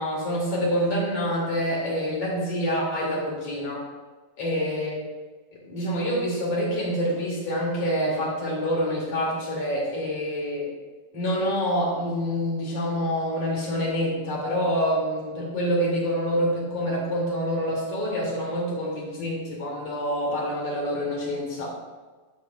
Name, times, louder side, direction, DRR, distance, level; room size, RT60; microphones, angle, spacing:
voice 1, 0.0-3.9 4.4-5.0 5.5-10.7 11.1-21.7, equal, 45° left, -4 dB, 3.2 m, -26 dB
12.5 x 7.2 x 2.3 m, 1.3 s
omnidirectional pair, 4.2 m